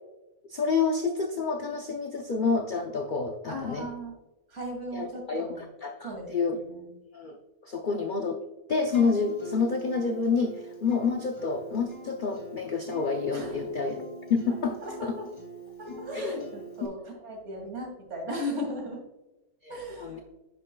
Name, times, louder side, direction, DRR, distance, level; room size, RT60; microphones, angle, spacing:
voice 1, 0.5-3.9 4.9-6.6 7.1-7.4 7.6-8.4 8.7-15.2 16.1-16.5 19.6-20.2, left 4 dB, 75° left, 4 dB, 0.4 m, -29 dB
voice 2, 3.5-4.1 4.5-5.6 6.0-6.9 13.3-13.6 14.8-15.3 15.8-19.0 19.7-20.2, equal, 50° right, 1 dB, 2.3 m, -37 dB
Acoustic guitar, 8.9-16.9, right 2 dB, 15° left, 2.2 m, -44 dB
9.7 x 6.3 x 2.3 m, 1.0 s
omnidirectional pair, 1.7 m